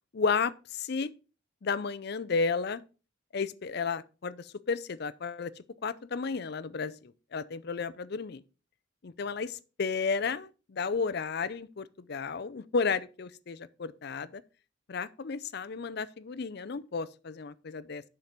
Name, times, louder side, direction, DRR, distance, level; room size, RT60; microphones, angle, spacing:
voice 1, 0.1-1.1 1.6-2.8 3.3-5.5 5.8-8.4 9.0-14.4 14.9-18.0, left 5 dB, 50° left, 0.5 m, -33 dB
7.4 x 5.8 x 5.2 m
head